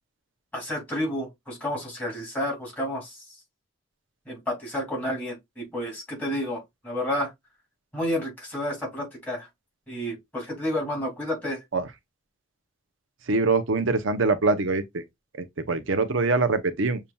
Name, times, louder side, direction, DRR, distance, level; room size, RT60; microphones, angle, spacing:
voice 1, 0.5-3.2 4.3-7.3 7.9-9.5 9.9-11.6, left 1 dB, 10° left, 2.7 m, -30 dB
voice 2, 13.3-15.0 15.4-17.0, right 3 dB, 75° right, 0.8 m, -24 dB
6.9 x 2.8 x 2.3 m
head